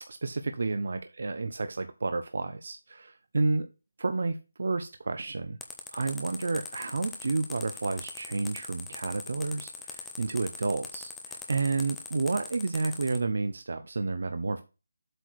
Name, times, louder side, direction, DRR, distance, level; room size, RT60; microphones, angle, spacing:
voice 1, 0.1-3.7 4.0-5.6 5.9-14.6, right 3 dB, 50° right, 8 dB, 0.7 m, -31 dB
sound 1, 5.6-13.2, left 5 dB, 5° left, 0.5 m, -41 dB
7.8 x 4.6 x 4.7 m, 0.29 s
hypercardioid pair, 180°, 0 cm